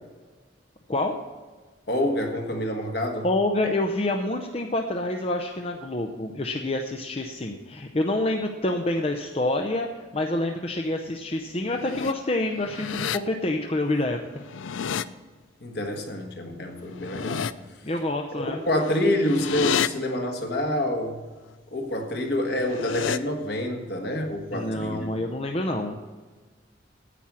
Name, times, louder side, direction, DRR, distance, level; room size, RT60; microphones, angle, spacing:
voice 1, 1.9-3.3 15.6-17.5 18.3-21.2 21.7-25.1, left 1 dB, 55° left, 3 dB, 1.6 m, -27 dB
voice 2, 3.2-14.2 17.8-18.6 24.5-26.0, left 2 dB, 30° left, 3 dB, 0.6 m, -27 dB
sound 1, 11.5-12.1 12.5-13.2 14.3-15.0 16.8-17.5 18.7-19.9 22.4-23.2, left 8 dB, 90° left, 0.4 m, -30 dB
10.0 x 8.8 x 6.1 m, 1.4 s
head